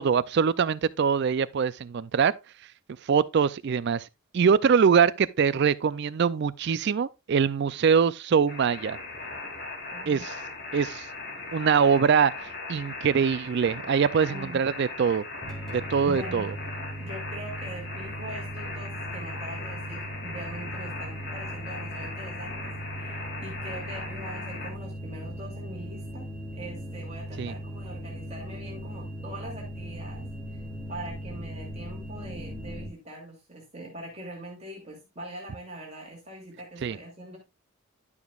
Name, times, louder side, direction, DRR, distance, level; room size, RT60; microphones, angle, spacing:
voice 1, 0.0-2.3 3.1-4.1 4.3-9.0 10.1-10.3 10.7-11.1 11.5-12.3 12.7-15.2 15.7-16.5 27.4-27.5 36.8-37.0, right 6 dB, 55° right, 0.4 m, -23 dB
sound 1, 8.5-24.7, left 3 dB, 50° left, 2.8 m, -39 dB
voice 2, 9.9-10.3 14.3-14.6 16.1-16.5 17.0-30.6 30.9-37.4, right 1 dB, 30° right, 2.6 m, -42 dB
sound 2, 15.4-32.9, right 1 dB, ahead, 3.3 m, -38 dB
11.0 x 7.1 x 2.4 m
head